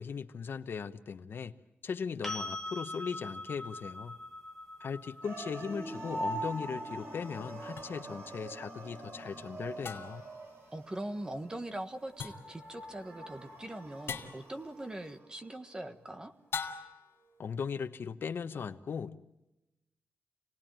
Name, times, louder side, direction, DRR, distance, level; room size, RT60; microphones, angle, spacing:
voice 1, 0.0-1.5 1.8-4.2 4.8-10.2 17.4-19.2, left 6 dB, 65° left, 8 dB, 1.0 m, -38 dB
sound 1, 2.2-10.1 12.9-13.0, left 1 dB, 5° left, 1.7 m, -45 dB
sound 2, 5.2-15.3, right 1 dB, 90° right, 5.4 m, -43 dB
sound 3, 7.8-7.9 9.8-10.3 12.2-12.6 14.1-14.5 16.5-17.1, left 6 dB, 85° left, 2.5 m, -39 dB
voice 2, 10.7-16.3, right 1 dB, 20° right, 8 dB, 1.4 m, -41 dB
28.0 x 18.5 x 9.0 m, 0.96 s
wide cardioid pair, 170°, 4 cm